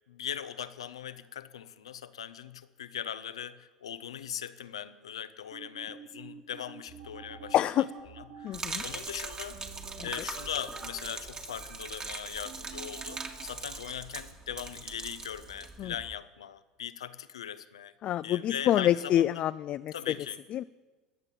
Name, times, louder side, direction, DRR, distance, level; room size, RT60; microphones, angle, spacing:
voice 1, 0.1-7.6 8.2-9.6 10.0-17.9 18.2-19.3 19.9-20.4, left 9 dB, 80° left, 14 dB, 0.8 m, -40 dB
sound 1, 5.5-13.9, right 6 dB, 60° right, 3.5 m, -48 dB
voice 2, 7.5-7.9 8.4-8.8 10.0-10.1 15.8-15.9 18.0-19.9 20.5-20.6, left 12 dB, 45° left, 14 dB, 0.4 m, -27 dB
Gurgling / Liquid, 8.5-16.2, right 4 dB, 30° right, 1.9 m, -41 dB
22.0 x 8.2 x 7.2 m, 1.3 s
hypercardioid pair, 75°, 3 cm